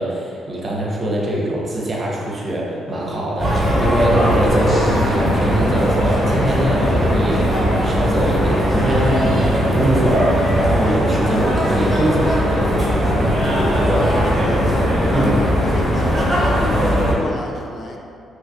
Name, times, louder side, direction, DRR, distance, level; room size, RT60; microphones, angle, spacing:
voice 1, 0.0-12.8 15.1-15.3, right 1 dB, 35° right, -3 dB, 0.7 m, -22 dB
sound 1, 3.4-17.1, equal, 10° right, 1.1 m, -18 dB
sound 2, 4.7-6.8 10.1-10.2, equal, 25° left, 1.2 m, -36 dB
voice 2, 14.4-14.7 15.1-18.0, left 2 dB, 45° left, 0 dB, 0.4 m, -31 dB
3.0 x 2.4 x 3.8 m, 2.5 s
cardioid pair, 90°, 0 cm